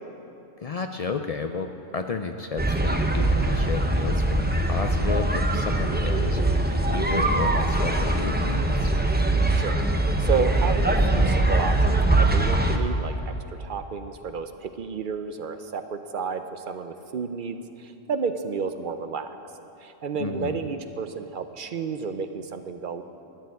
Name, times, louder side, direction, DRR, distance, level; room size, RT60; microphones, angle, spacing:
voice 1, 0.6-1.7 1.9-6.4 6.7-8.9 20.2-20.6, left 5 dB, 55° left, 6 dB, 0.4 m, -32 dB
sound 1, 2.6-12.8, right 2 dB, 10° right, 0.5 m, -22 dB
voice 2, 10.2-13.3 13.6-19.3 19.8-23.0, right 5 dB, 55° right, 9 dB, 0.6 m, -31 dB
12.5 x 6.7 x 9.4 m, 2.8 s
omnidirectional pair, 1.2 m